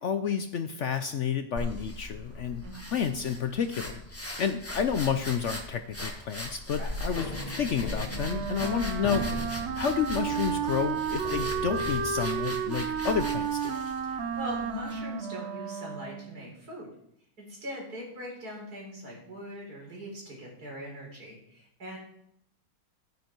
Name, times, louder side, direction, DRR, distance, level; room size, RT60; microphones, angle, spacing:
voice 1, 0.0-2.7 2.9-7.3 7.6-13.7, left 7 dB, 60° left, 9 dB, 0.8 m, -30 dB
sound 1, 1.6-15.0, left 1 dB, 10° left, 1.5 m, -39 dB
voice 2, 2.6-3.0 6.7-6.9 14.0-16.9 17.4-22.0, equal, 70° right, -2 dB, 4.5 m, -41 dB
sound 2, 7.1-12.1, left 2 dB, 30° left, 1.0 m, -40 dB
Wind instrument woodwind instrument, 8.1-16.4, right 7 dB, 50° right, 0.9 m, -32 dB
12.5 x 9.3 x 4.5 m, 0.73 s
omnidirectional pair, 1.7 m